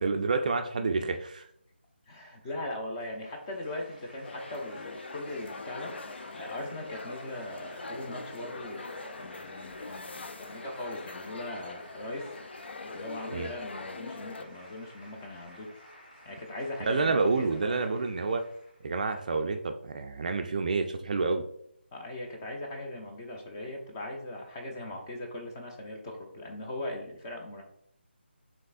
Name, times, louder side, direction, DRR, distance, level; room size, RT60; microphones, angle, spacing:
voice 1, 0.0-1.5 13.3-13.5 16.9-18.4 18.8-21.5, right 4 dB, 40° right, 6 dB, 0.4 m, -28 dB
voice 2, 2.1-5.9 6.3-12.3 12.9-15.7 16.2-17.8 21.9-27.6, left 1 dB, 20° left, 1 dB, 0.6 m, -40 dB
sound 1, 3.0-19.0, equal, 45° left, 1.8 m, -53 dB
sound 2, 4.2-14.4, left 3 dB, 65° left, 0.4 m, -42 dB
5.2 x 3.4 x 2.5 m, 0.70 s
figure-of-eight pair, 160°, 6 cm